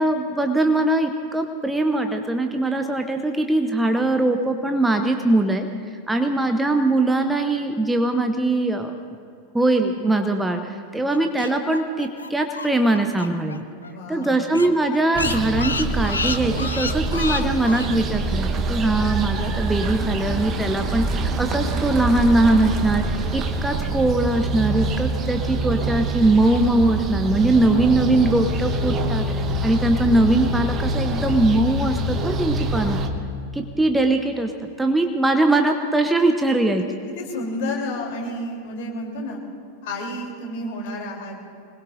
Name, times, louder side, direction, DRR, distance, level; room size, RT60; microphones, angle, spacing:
voice 1, 0.0-5.7 6.1-8.9 9.5-13.6 14.1-33.0 33.5-34.5 34.8-36.8, right 2 dB, 5° right, 5 dB, 0.9 m, -21 dB
sound 1, 11.1-13.6 13.8-13.9 14.2-14.3 14.5-17.9, left 4 dB, 75° left, 0.6 m, -29 dB
voice 2, 13.9-14.5 37.1-39.4 39.8-41.4, left 1 dB, 50° left, 0 dB, 3.4 m, -31 dB
sound 2, 15.1-33.1, right 2 dB, 30° right, 1.1 m, -25 dB
25.5 x 20.5 x 2.6 m, 2.2 s
figure-of-eight pair, 90°, 0 cm